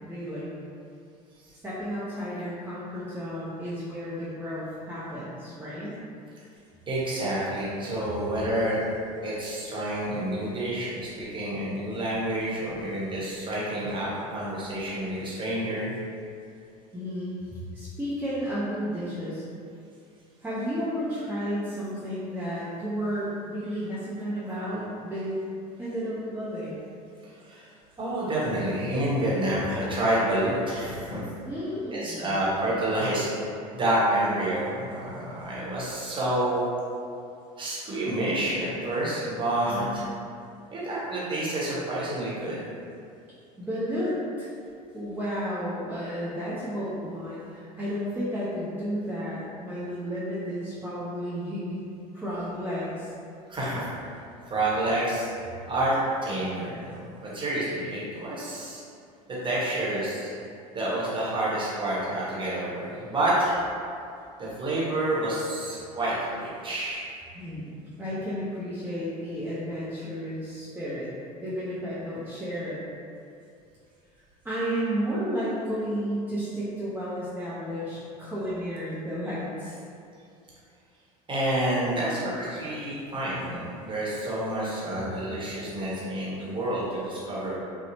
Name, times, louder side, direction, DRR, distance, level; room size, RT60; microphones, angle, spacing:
voice 1, 0.1-0.5 1.6-5.9 16.9-19.4 20.4-25.4 25.8-26.8 31.5-32.4 39.7-40.0 43.6-44.5 44.9-51.8 52.1-53.1 67.3-71.1 71.4-72.8 74.4-79.8, equal, 10° right, -10 dB, 0.5 m, -32 dB
voice 2, 6.9-8.8 9.2-15.9 27.4-27.7 28.0-31.2 31.9-36.6 37.6-40.0 40.7-42.6 53.5-54.2 54.5-55.3 55.6-56.0 56.2-58.8 59.3-60.3 60.7-63.6 64.4-67.1 81.3-87.6, right 1 dB, 25° right, -7 dB, 0.9 m, -28 dB
2.7 x 2.0 x 2.7 m, 2.5 s
hypercardioid pair, 75°, 20 cm